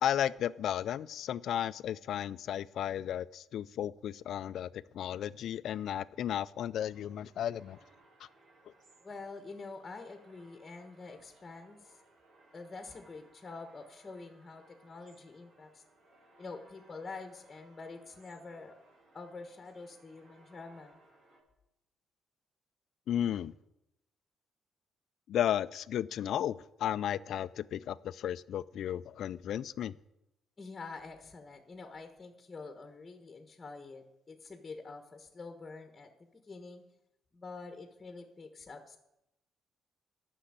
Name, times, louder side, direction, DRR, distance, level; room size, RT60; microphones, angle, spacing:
voice 1, 0.0-4.7 4.9-7.8 23.1-23.5 25.3-29.9, left 10 dB, 70° left, 17 dB, 0.4 m, -34 dB
sound 1, 6.9-21.4, right 2 dB, 60° right, 2.5 m, -63 dB
voice 2, 9.0-12.0 12.5-15.8 16.4-18.7 19.1-21.0 30.6-36.8 37.3-39.0, left 3 dB, 25° left, 7 dB, 1.2 m, -47 dB
10.0 x 6.3 x 8.8 m, 0.87 s
cardioid pair, 90°, 0 cm